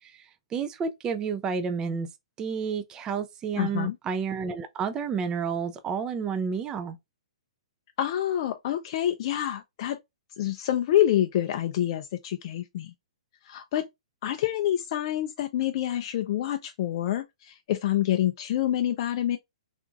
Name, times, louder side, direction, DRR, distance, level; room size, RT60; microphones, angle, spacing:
voice 1, 0.5-2.1 2.4-7.0, right 6 dB, 20° right, 0.4 m, -30 dB
voice 2, 3.6-4.0 8.0-10.0 10.4-12.9 13.4-13.9 14.2-19.4, left 12 dB, 50° left, 0.4 m, -27 dB
3.6 x 2.5 x 2.3 m
hypercardioid pair, 130°, 4 cm